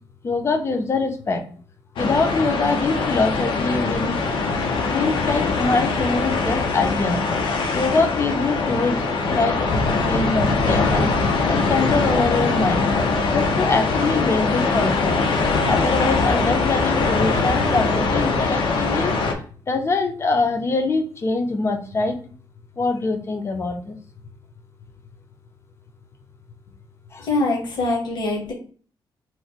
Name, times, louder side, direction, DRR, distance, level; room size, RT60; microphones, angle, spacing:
voice 1, 0.2-1.4 2.0-4.2 4.9-7.2 7.7-9.0 9.3-11.1 11.5-12.9 13.3-15.2 15.7-19.1 19.7-22.2 22.8-24.0 27.1-27.3, left 3 dB, 30° left, 5 dB, 0.5 m, -23 dB
sound 1, 2.0-19.3, left 3 dB, 80° left, 0.6 m, -22 dB
voice 2, 27.2-28.5, left 2 dB, 60° left, -2 dB, 1.0 m, -23 dB
3.0 x 2.1 x 4.1 m, 0.43 s
cardioid pair, 125°, 8 cm